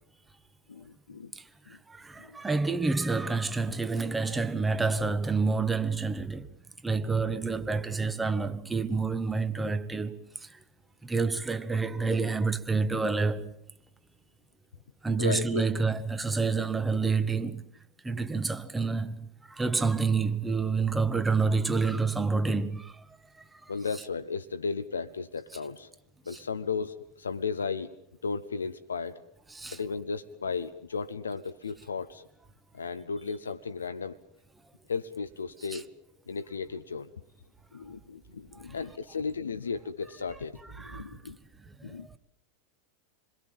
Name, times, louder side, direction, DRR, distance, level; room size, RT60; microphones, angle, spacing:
voice 1, 0.7-1.3 1.7-1.8 2.2-2.4 15.2-15.7 18.2-18.3 23.7-25.9 26.3-27.9 28.2-29.2 29.7-32.2 32.7-34.2 34.9-35.9 36.3-37.1 37.7-41.4 41.8-42.1, left 5 dB, 80° left, 0.9 m, -35 dB
voice 2, 1.3-6.5 6.8-10.6 11.0-13.5 15.0-17.6 18.0-23.4 29.5-29.8 35.7-35.8 40.8-41.2 41.8-42.2, right 4 dB, 10° right, 1.6 m, -28 dB
27.5 x 22.0 x 7.4 m
figure-of-eight pair, 90°, 0 cm